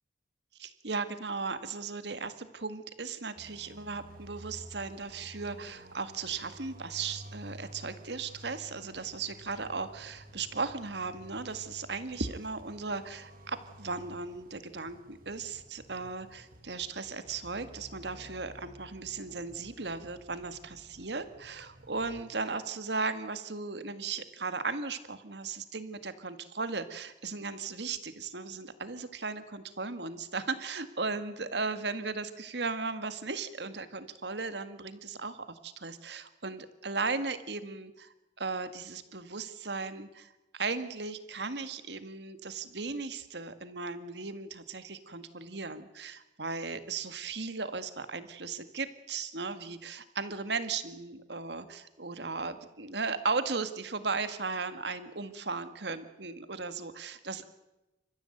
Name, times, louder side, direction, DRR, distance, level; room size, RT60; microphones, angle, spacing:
voice 1, 0.6-57.5, right 4 dB, 70° right, 11 dB, 1.9 m, -36 dB
sound 1, 3.4-22.2, right 1 dB, 50° right, 2.2 m, -52 dB
28.0 x 15.0 x 9.2 m, 1.0 s
head